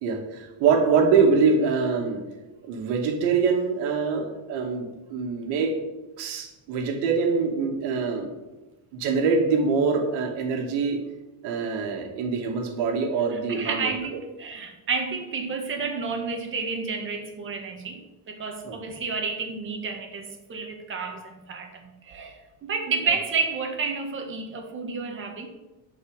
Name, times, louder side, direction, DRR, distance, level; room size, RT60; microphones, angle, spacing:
voice 1, 0.0-2.2 2.6-5.7 6.2-8.3 8.9-11.0 11.4-13.9 18.7-18.8, right 5 dB, 80° right, 2 dB, 2.4 m, -24 dB
voice 2, 13.3-25.5, right 5 dB, 30° right, 4 dB, 2.0 m, -31 dB
12.0 x 5.4 x 8.1 m, 1.1 s
cardioid pair, 165°, 39 cm